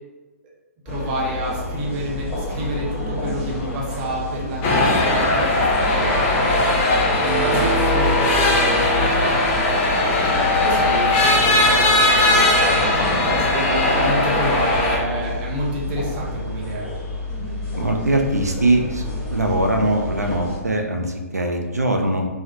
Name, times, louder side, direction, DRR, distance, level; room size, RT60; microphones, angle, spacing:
sound 1, 0.9-20.6, left 2 dB, 10° left, 1.1 m, -29 dB
voice 1, 0.9-6.7 7.2-9.9 10.2-12.9 13.2-16.9, right 1 dB, 35° right, -4 dB, 0.7 m, -28 dB
sound 2, 1.7-2.5 3.9-4.0 5.0-12.8, left 1 dB, 70° left, 0.8 m, -28 dB
sound 3, 4.6-15.0, left 1 dB, 30° left, 0.4 m, -19 dB
voice 2, 17.7-19.1 19.3-22.3, right 1 dB, 90° right, 3 dB, 0.4 m, -21 dB
2.3 x 2.0 x 2.6 m, 1.2 s
figure-of-eight pair, 120°, 8 cm